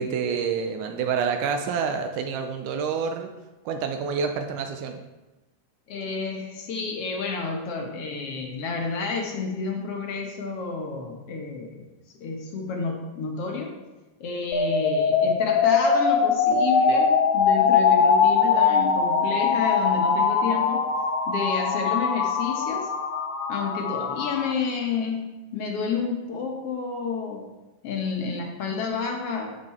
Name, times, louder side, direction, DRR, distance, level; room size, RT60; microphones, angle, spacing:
voice 1, 0.0-3.3 3.7-5.0, right 6 dB, 75° right, 5 dB, 2.0 m, -28 dB
voice 2, 5.9-11.9 12.2-13.7 14.2-20.9 21.2-22.9 23.5-25.3 25.5-27.5 27.8-29.6, left 4 dB, 60° left, 1 dB, 1.7 m, -30 dB
sound 1, 14.5-24.5, left 6 dB, 75° left, 2.4 m, -22 dB
10.5 x 7.4 x 4.3 m, 1.1 s
omnidirectional pair, 3.9 m